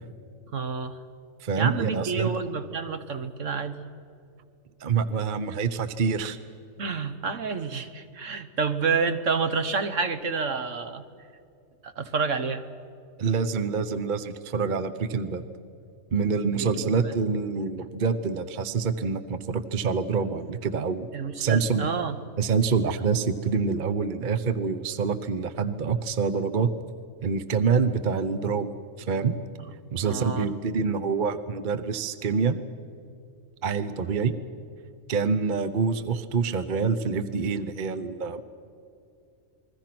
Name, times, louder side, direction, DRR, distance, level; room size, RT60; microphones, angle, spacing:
voice 1, 0.5-1.0 1.6-3.8 6.8-11.0 11.8-12.6 16.6-16.7 17.0-17.1 21.1-22.2 30.0-30.5, right 5 dB, 65° right, 9 dB, 1.6 m, -29 dB
voice 2, 1.4-2.4 4.8-6.4 13.2-15.4 16.1-21.1 21.4-21.9 22.4-26.7 27.2-29.3 29.9-32.6 33.6-34.3 35.1-38.4, right 5 dB, 40° right, 11 dB, 0.9 m, -26 dB
28.0 x 21.5 x 6.0 m, 2.5 s
omnidirectional pair, 1.4 m